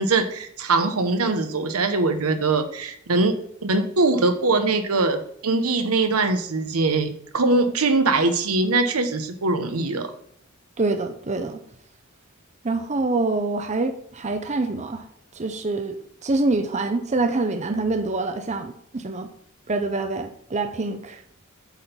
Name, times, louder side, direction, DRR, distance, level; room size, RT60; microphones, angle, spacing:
voice 1, 0.0-10.1, right 3 dB, 90° right, 8 dB, 0.9 m, -22 dB
voice 2, 10.8-11.6 12.6-15.0 15.4-15.9 16.2-19.3 19.7-21.2, right 3 dB, 35° right, 8 dB, 0.6 m, -25 dB
8.2 x 4.4 x 5.2 m, 0.65 s
head